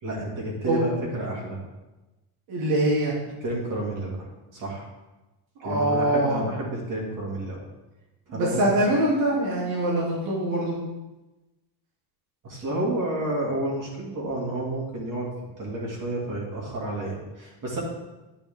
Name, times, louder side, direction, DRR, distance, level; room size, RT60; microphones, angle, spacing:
voice 1, 0.0-1.6 3.4-4.3 4.5-4.9 5.6-7.6 8.3-8.6 12.4-15.3 15.6-17.8, right 1 dB, 40° right, -3 dB, 2.5 m, -30 dB
voice 2, 2.5-3.1 5.6-6.4 8.3-10.7, right 1 dB, 85° right, -5 dB, 3.0 m, -23 dB
10.0 x 5.6 x 3.6 m, 1.1 s
cardioid pair, 130°, 49 cm